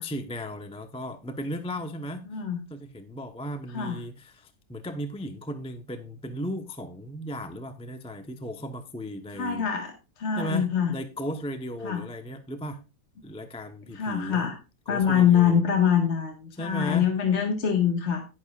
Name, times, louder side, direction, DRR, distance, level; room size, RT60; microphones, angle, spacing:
voice 1, 0.0-2.4 2.7-9.7 10.4-12.8 13.2-14.5 14.9-15.6 16.5-17.1, equal, 5° left, 7 dB, 0.7 m, -36 dB
voice 2, 2.3-2.6 3.7-4.0 9.3-9.9 10.2-10.9 11.8-12.0 13.9-14.5 14.9-18.2, left 8 dB, 45° left, 3 dB, 1.8 m, -24 dB
11.5 x 10.5 x 2.4 m, 0.28 s
omnidirectional pair, 1.7 m